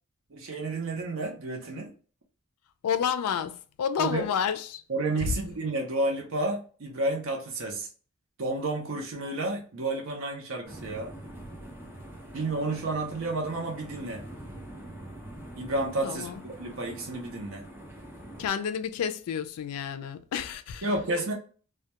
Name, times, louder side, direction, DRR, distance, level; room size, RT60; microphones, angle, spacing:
voice 1, 0.3-1.9 4.0-4.3 4.9-7.9 8.4-11.1 12.3-14.2 15.5-17.6 20.8-21.3, right 2 dB, 60° right, 0.6 m, -31 dB
voice 2, 2.8-4.8 5.2-5.4 16.0-16.4 18.4-20.9, left 7 dB, 85° left, 0.3 m, -30 dB
sound 1, 10.6-18.5, right 1 dB, 10° right, 0.5 m, -44 dB
2.2 x 2.1 x 2.8 m
head